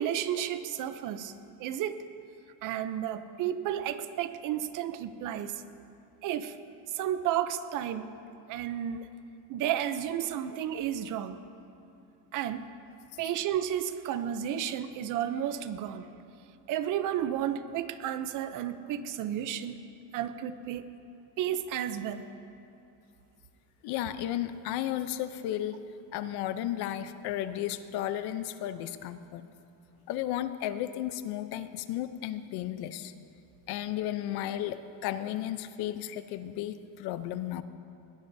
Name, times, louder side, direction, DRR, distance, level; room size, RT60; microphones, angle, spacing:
voice 1, 0.0-1.3 1.6-2.0 2.6-5.6 6.2-6.6 6.9-8.1 8.5-9.1 9.5-11.4 12.3-12.7 13.2-16.0 16.7-19.8 20.1-20.8 21.4-22.3, right 10 dB, 50° right, 11 dB, 0.6 m, -32 dB
voice 2, 23.8-25.9 26.1-29.5 30.1-33.1 33.7-37.6, left 12 dB, 60° left, 12 dB, 0.7 m, -34 dB
20.5 x 19.0 x 2.7 m, 2.7 s
cardioid pair, 175°, 42 cm